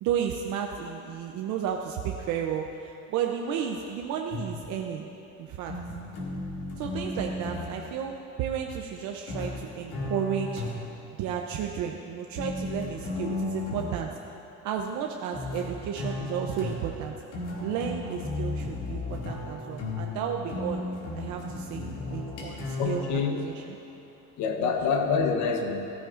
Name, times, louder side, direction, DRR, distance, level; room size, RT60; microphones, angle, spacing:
voice 1, 0.0-5.1 5.4-5.7 6.8-10.6 11.2-14.1 14.6-17.1 17.6-23.8 24.6-24.7, right 8 dB, 70° right, 2 dB, 0.7 m, -33 dB
sound 1, 4.3-4.8 5.7-7.8 9.3-11.0 12.4-14.0 15.3-23.1, left 2 dB, 55° left, 2.1 m, -35 dB
voice 2, 22.8-23.4 24.4-25.9, left 5 dB, 70° left, 3 dB, 1.1 m, -26 dB
14.5 x 13.5 x 2.6 m, 2.8 s
cardioid pair, 170°, 30 cm